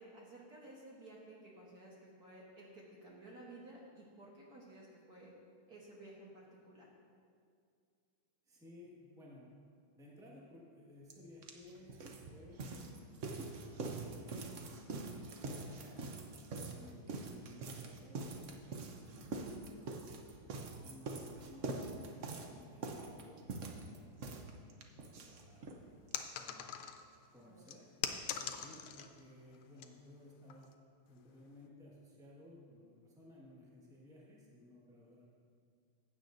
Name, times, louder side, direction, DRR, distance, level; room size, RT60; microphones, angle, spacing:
voice 1, 0.0-5.3 5.7-6.9 15.6-16.0 27.4-27.6 28.3-28.6, right 1 dB, 50° right, -4 dB, 1.5 m, -55 dB
voice 2, 8.5-9.5 10.0-12.0 12.3-13.7 14.0-15.4 16.6-20.0 20.8-24.3 25.0-25.8 26.4-26.7 27.3-27.8 28.5-30.7 31.1-35.3, left 1 dB, ahead, -5 dB, 1.3 m, -58 dB
sound 1, 11.1-11.2 11.4-25.8 26.1-26.2 26.4-26.5 26.8-26.9, right 3 dB, 75° right, 0.6 m, -44 dB
sound 2, 26.1-27.2 27.7-29.2 29.5-29.9 30.5-30.7, left 8 dB, 80° left, 1.4 m, -42 dB
15.0 x 8.3 x 2.6 m, 2.3 s
omnidirectional pair, 2.3 m